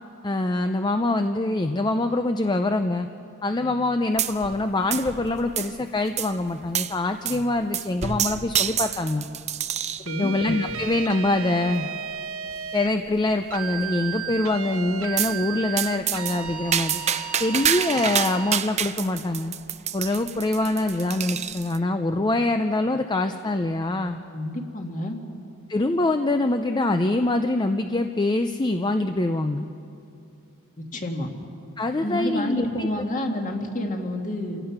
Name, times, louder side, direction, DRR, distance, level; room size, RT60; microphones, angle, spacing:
voice 1, 0.2-3.1 3.4-9.3 10.2-11.9 12.7-17.0 17.4-19.5 19.9-24.2 25.7-29.7 31.8-32.9, left 2 dB, 20° left, 7 dB, 0.5 m, -24 dB
sound 1, 4.2-4.6 4.9-5.8 6.2-6.3 6.7-6.9 7.3-7.4 7.7-10.1 10.7-11.0 11.7-11.8 12.1-12.2 12.5-12.6 13.1-13.5 15.2-15.4 15.8-21.8, right 9 dB, 30° right, 0.6 m, -28 dB
voice 2, 10.0-10.4 24.3-25.2 30.8-31.3 32.0-34.6, left 1 dB, 35° left, 3 dB, 1.9 m, -29 dB
sound 2, 10.1-12.9 13.5-18.7, right 7 dB, 80° right, 1.0 m, -34 dB
27.5 x 17.0 x 5.9 m, 2.7 s
head